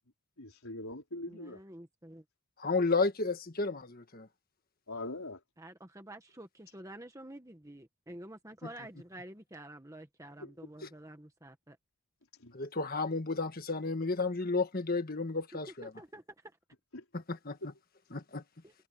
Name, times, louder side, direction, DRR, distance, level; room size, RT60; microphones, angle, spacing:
voice 1, 0.4-1.6 4.9-5.4 10.4-10.5 10.8-10.9 12.4-12.5 16.9-17.0 17.6-17.7, left 2 dB, 70° left, 4.6 m, -42 dB
voice 2, 1.3-2.2 5.6-11.8 15.8-16.2 18.6-18.7, right 1 dB, 15° right, 1.4 m, -49 dB
voice 3, 2.6-4.3 12.5-15.9 17.1-17.6 18.1-18.4, left 3 dB, 40° left, 1.6 m, -32 dB
head